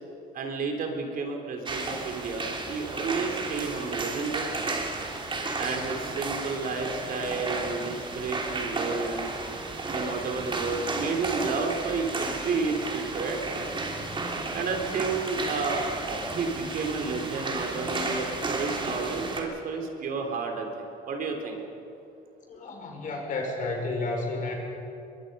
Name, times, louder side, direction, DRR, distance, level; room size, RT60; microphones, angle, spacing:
voice 1, 0.3-4.5 5.6-9.3 9.9-13.4 14.5-15.9 16.3-21.6, right 4 dB, 55° right, 2 dB, 3.5 m, -31 dB
sound 1, 1.6-19.4, right 3 dB, 30° right, 3.1 m, -33 dB
voice 2, 22.5-24.5, left 2 dB, 50° left, 1 dB, 5.2 m, -31 dB
24.0 x 22.5 x 5.5 m, 2.8 s
cardioid pair, 110°, 17 cm